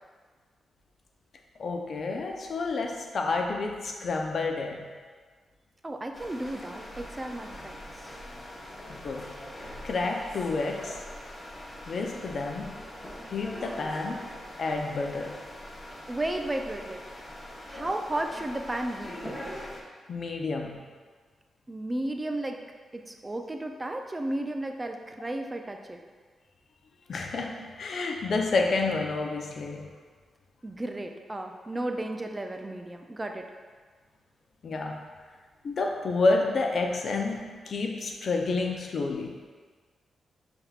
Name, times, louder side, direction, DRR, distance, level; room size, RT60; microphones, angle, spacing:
voice 1, 1.6-4.9 8.9-9.3 9.8-11.0 11.9-12.8 13.3-14.2 14.6-15.4 20.1-20.8 27.1-29.9 34.6-35.0 35.6-39.4, left 3 dB, 60° left, 2 dB, 0.5 m, -29 dB
voice 2, 5.8-8.1 16.1-17.0 17.7-19.2 21.7-22.6 22.9-26.0 30.6-33.4, right 1 dB, 25° right, 4 dB, 0.4 m, -34 dB
sound 1, 6.1-19.8, left 1 dB, 25° left, 0.9 m, -42 dB
5.4 x 3.5 x 2.4 m, 1.5 s
cardioid pair, 65°, 0 cm